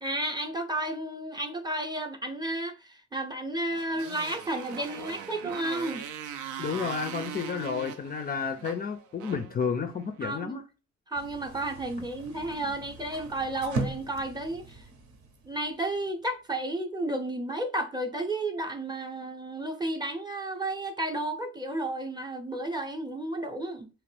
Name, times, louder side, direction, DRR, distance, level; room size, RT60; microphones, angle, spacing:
voice 1, 0.0-6.1 10.2-10.6 11.1-14.9 15.4-23.9, right 1 dB, 15° right, 0.6 m, -32 dB
Motorcycle, 3.7-10.2, right 9 dB, 80° right, 0.5 m, -41 dB
voice 2, 6.6-10.6, left 6 dB, 30° left, 0.4 m, -31 dB
sound 1, 11.1-16.2, right 3 dB, 65° right, 0.8 m, -39 dB
2.9 x 2.5 x 3.3 m
cardioid pair, 90°, 30 cm